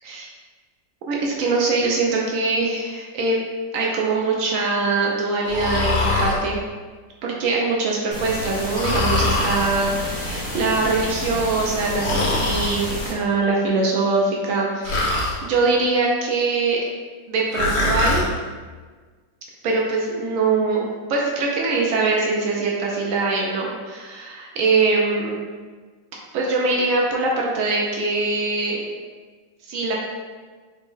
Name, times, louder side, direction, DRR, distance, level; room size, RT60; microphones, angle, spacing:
voice 1, 1.1-3.4 3.7-6.6 7.2-16.8 17.3-18.3 19.6-25.4 26.3-28.8 29.7-29.9, right 3 dB, 80° right, -2 dB, 0.7 m, -22 dB
Breathing, 5.5-6.4 8.7-9.7 12.0-12.7 14.8-15.4 17.5-18.3, left 2 dB, 80° left, 1.5 m, -22 dB
sound 1, 8.1-13.1, equal, 35° left, 1.2 m, -30 dB
4.2 x 2.1 x 3.6 m, 1.5 s
omnidirectional pair, 2.0 m